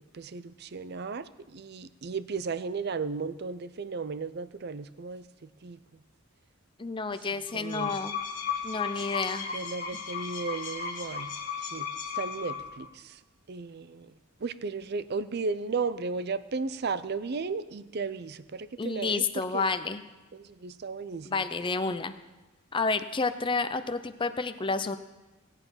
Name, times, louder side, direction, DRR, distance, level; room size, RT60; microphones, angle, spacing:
voice 1, 0.0-5.8 7.5-8.0 9.5-11.3 11.6-11.9 12.1-13.2 13.5-14.1 14.4-19.7 20.3-21.5, right 4 dB, 50° right, 15 dB, 0.5 m, -35 dB
voice 2, 6.8-8.2 8.6-9.5 18.8-20.0 21.2-22.1 22.7-25.0, left 4 dB, 25° left, 10 dB, 0.6 m, -30 dB
sound 1, 7.5-12.9, left 6 dB, 40° left, 1.7 m, -35 dB
17.0 x 9.1 x 5.7 m, 1.1 s
head